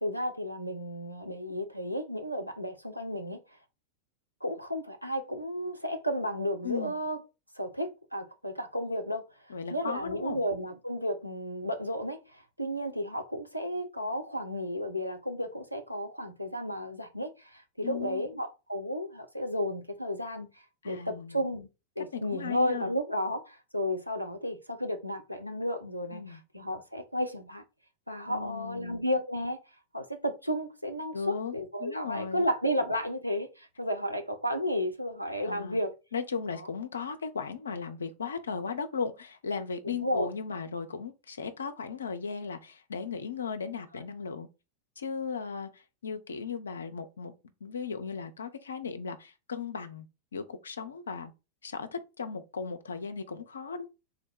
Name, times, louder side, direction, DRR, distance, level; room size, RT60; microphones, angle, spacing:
voice 1, 0.0-3.4 4.4-7.2 7.6-9.3 9.7-20.5 20.8-21.7 22.0-27.6 28.1-29.6 29.9-35.9 36.6-36.7 39.8-40.3, equal, 90° right, 0.6 m, -33 dB
voice 2, 6.6-6.9 9.5-10.4 17.8-18.2 20.8-21.4 22.1-22.9 26.1-26.4 28.3-29.0 31.1-31.5 31.8-32.5 35.4-35.8 36.1-44.5 45.0-47.3 47.6-50.1 50.3-51.3 51.6-53.9, left 5 dB, 70° left, 0.6 m, -36 dB
3.8 x 2.2 x 4.4 m
figure-of-eight pair, 90°, 0 cm